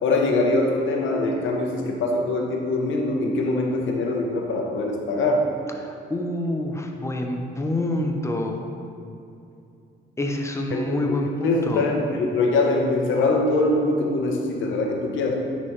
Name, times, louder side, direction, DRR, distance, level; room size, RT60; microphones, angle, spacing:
voice 1, 0.0-5.4 10.7-15.4, left 2 dB, 75° left, 1 dB, 1.0 m, -23 dB
voice 2, 5.8-8.6 10.2-11.9, left 1 dB, 15° left, 2 dB, 0.8 m, -27 dB
9.8 x 4.2 x 3.3 m, 2.6 s
cardioid pair, 90°, 20 cm